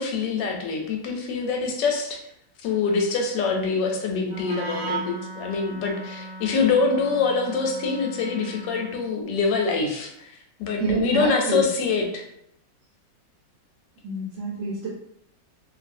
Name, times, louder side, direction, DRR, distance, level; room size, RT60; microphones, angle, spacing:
voice 1, 0.0-2.2 2.6-10.3 10.6-12.2, left 4 dB, 75° left, 2 dB, 1.2 m, -25 dB
Wind instrument woodwind instrument, 4.2-9.1, right 2 dB, 15° left, 1.0 m, -36 dB
voice 2, 10.8-11.7 14.0-14.9, right 3 dB, 80° right, -4 dB, 1.3 m, -27 dB
2.8 x 2.5 x 2.5 m, 0.77 s
omnidirectional pair, 2.1 m